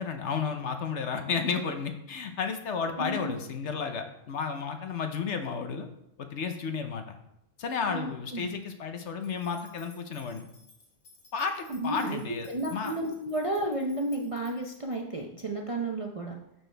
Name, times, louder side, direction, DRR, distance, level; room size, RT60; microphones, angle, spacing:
voice 1, 0.0-5.9 6.2-7.2 7.6-10.4 11.3-12.9, left 5 dB, 60° left, 6 dB, 1.0 m, -32 dB
voice 2, 3.0-3.4 7.9-8.5 11.7-12.2 12.5-16.4, right 1 dB, 40° right, 0 dB, 0.5 m, -32 dB
sound 1, 9.2-15.0, left 4 dB, 80° left, 1.9 m, -57 dB
12.0 x 4.6 x 3.3 m, 0.80 s
omnidirectional pair, 1.4 m